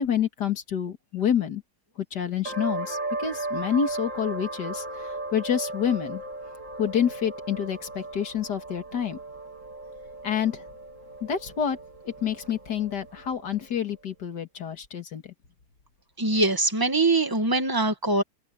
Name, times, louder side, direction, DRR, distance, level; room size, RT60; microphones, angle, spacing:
voice 1, 0.0-1.6 2.0-6.2 6.8-9.2 10.2-10.6 11.2-11.8 12.2-15.3, left 8 dB, 80° left, 2.4 m, -28 dB
sound 1, 2.5-13.8, right 2 dB, 50° right, 3.1 m, -36 dB
voice 2, 16.2-18.2, right 2 dB, 15° right, 1.8 m, -23 dB
omnidirectional pair, 1.8 m